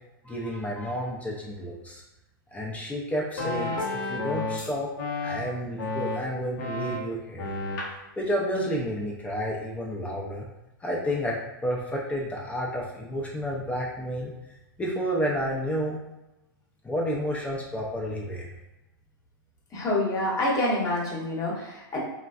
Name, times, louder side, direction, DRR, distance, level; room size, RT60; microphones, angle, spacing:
voice 1, 0.2-2.0 2.5-4.9 5.2-7.5 8.2-10.5 10.8-14.3 14.8-16.0 16.8-18.5, equal, 10° left, -3 dB, 0.5 m, -30 dB
sound 1, 3.1-4.7 5.0-5.4 5.8-6.2 6.6-7.0 7.4-7.9, left 2 dB, 65° left, 0.6 m, -31 dB
voice 2, 19.7-22.0, left 1 dB, 30° left, -3 dB, 0.9 m, -27 dB
3.2 x 2.1 x 2.4 m, 0.96 s
hypercardioid pair, 110°, 12 cm